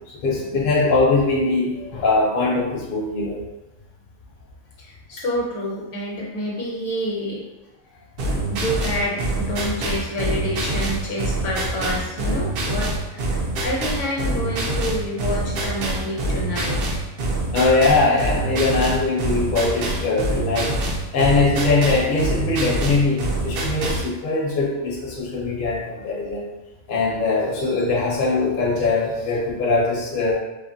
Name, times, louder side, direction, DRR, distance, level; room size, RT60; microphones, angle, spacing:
voice 1, 0.1-3.4 17.5-20.7 21.1-26.4 26.9-30.4, left 3 dB, 55° left, -3 dB, 0.7 m, -21 dB
voice 2, 4.8-7.4 8.5-16.8, equal, 70° left, -3 dB, 1.0 m, -28 dB
sound 1, 8.2-24.1, right 2 dB, 65° right, 0.6 m, -25 dB
2.7 x 2.5 x 2.6 m, 1.1 s
omnidirectional pair, 1.4 m